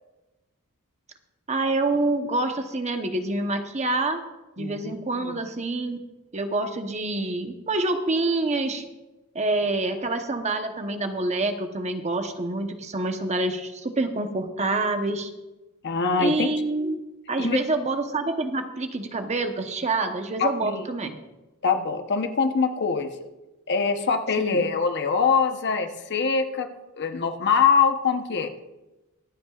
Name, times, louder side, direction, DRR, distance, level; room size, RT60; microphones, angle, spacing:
voice 1, 1.5-4.2 4.6-6.0 6.3-8.8 9.3-15.3 16.2-17.0 17.3-21.2 24.4-24.7, right 2 dB, 30° right, 6 dB, 0.9 m, -27 dB
voice 2, 4.6-5.3 15.8-16.5 17.4-17.6 20.4-20.8 21.6-23.1 23.7-26.7 27.0-28.5, left 5 dB, 55° left, 7 dB, 0.9 m, -23 dB
24.0 x 8.6 x 2.4 m, 1.0 s
head